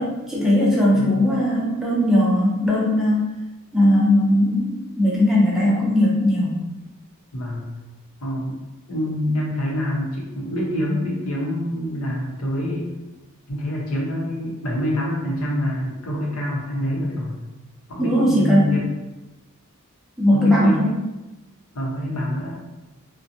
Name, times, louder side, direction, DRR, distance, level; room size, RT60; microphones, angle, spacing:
voice 1, 0.0-3.3 3.7-6.7 18.0-18.7 20.2-21.0, left 1 dB, ahead, -7 dB, 0.5 m, -19 dB
voice 2, 0.9-1.3 7.3-7.7 8.2-8.6 8.9-12.9 13.5-17.4 17.9-18.9 20.3-20.9 21.7-22.6, equal, 80° left, -3 dB, 0.7 m, -26 dB
2.5 x 2.1 x 2.8 m, 1.1 s
head